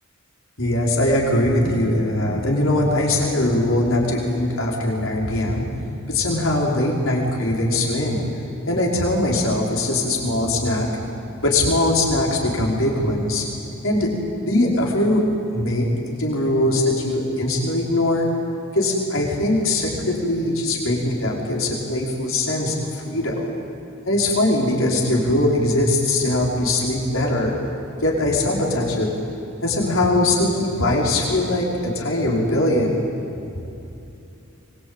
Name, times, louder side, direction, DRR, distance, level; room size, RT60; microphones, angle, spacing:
voice 1, 0.6-5.7 6.1-10.9 11.4-13.5 13.8-14.1 14.4-15.2 15.5-18.3 18.7-23.5 24.1-27.6 28.0-29.1 29.6-33.0, left 1 dB, 70° left, -2 dB, 5.4 m, -21 dB
24.0 x 22.5 x 9.1 m, 2.8 s
head